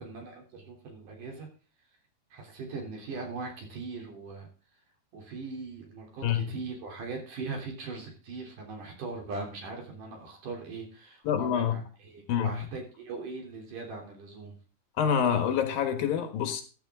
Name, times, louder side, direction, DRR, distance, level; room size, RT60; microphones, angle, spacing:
voice 1, 0.0-1.5 2.3-4.8 5.1-14.6, right 3 dB, 55° right, 4.7 m, -40 dB
voice 2, 11.2-11.7 12.3-12.6 15.0-16.6, left 8 dB, 70° left, 3.2 m, -26 dB
15.0 x 10.0 x 3.7 m
omnidirectional pair, 4.4 m